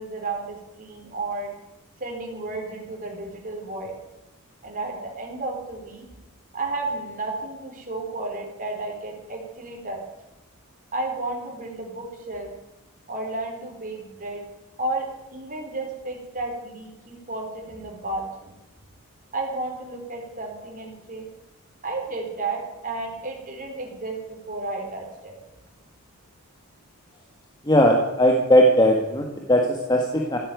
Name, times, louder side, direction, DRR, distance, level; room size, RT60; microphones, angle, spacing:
voice 1, 0.0-1.5 2.0-3.9 4.6-6.0 6.5-10.0 10.9-12.5 13.1-14.4 14.8-18.6 19.3-21.3 21.8-25.4, right 2 dB, 40° right, 1 dB, 4.2 m, -32 dB
voice 2, 27.7-30.4, equal, 20° left, 1 dB, 1.6 m, -18 dB
15.5 x 8.9 x 9.4 m, 0.95 s
head